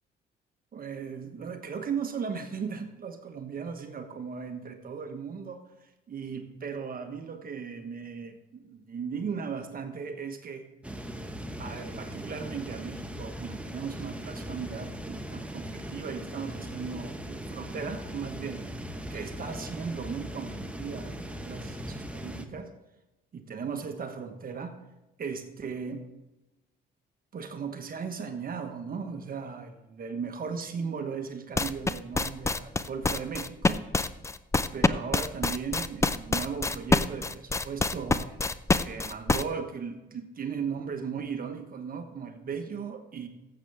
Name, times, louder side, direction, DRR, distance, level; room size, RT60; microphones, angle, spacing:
voice 1, 0.7-10.7 11.6-18.7 19.1-21.2 21.4-22.7 23.3-24.8 25.2-26.1 27.3-33.9 34.7-38.5 38.8-43.3, right 6 dB, 45° right, 6 dB, 1.3 m, -37 dB
sound 1, 10.8-22.5, equal, 5° right, 1.1 m, -39 dB
sound 2, 31.6-39.4, left 3 dB, 15° left, 0.5 m, -26 dB
14.5 x 7.9 x 3.5 m, 1.0 s
cardioid pair, 90°, 20 cm